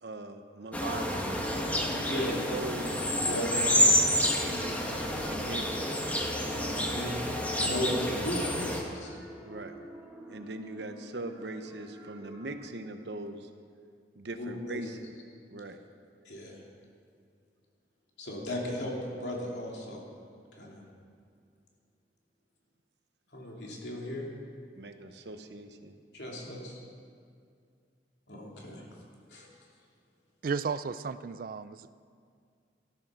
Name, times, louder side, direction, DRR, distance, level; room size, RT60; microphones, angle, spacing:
voice 1, 0.0-1.2 1.5-3.1 3.8-4.0 4.4-6.1 9.4-9.7 10.3-13.5 14.2-15.0 15.5-15.8 24.8-26.0, right 2 dB, 65° right, 7 dB, 1.0 m, -41 dB
sound 1, 0.7-8.8, equal, 10° left, 1.4 m, -29 dB
voice 2, 2.0-2.4 3.2-3.9 6.5-7.2 7.6-9.2 14.3-14.8 16.3-16.6 18.2-20.0 20.6-20.8 23.3-24.3 26.1-26.7 28.3-28.8 29.3-29.5, left 1 dB, 70° left, -2 dB, 3.0 m, -36 dB
sound 2, 6.3-12.6, right 1 dB, 10° right, 2.1 m, -49 dB
voice 3, 30.4-31.9, right 5 dB, 50° right, 14 dB, 0.4 m, -34 dB
13.0 x 13.0 x 6.2 m, 2.2 s
head